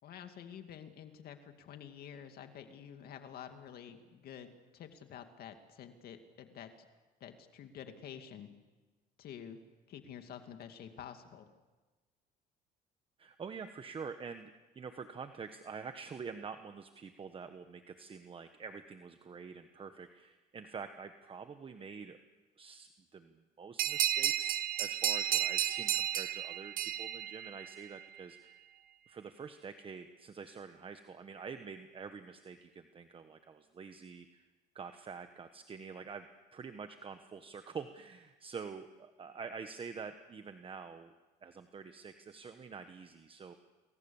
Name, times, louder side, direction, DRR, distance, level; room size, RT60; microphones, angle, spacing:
voice 1, 0.0-6.9 7.2-8.5 9.2-9.6 9.9-11.5, left 8 dB, 65° left, 7 dB, 2.3 m, -49 dB
voice 2, 13.2-22.2 22.6-28.7 29.1-34.4 34.7-36.3 36.5-41.1 41.4-43.5, right 5 dB, 30° right, 8 dB, 1.2 m, -47 dB
sound 1, 23.8-28.0, right 11 dB, 60° right, 0.9 m, -33 dB
28.5 x 22.5 x 7.2 m, 1.2 s
cardioid pair, 110°, 17 cm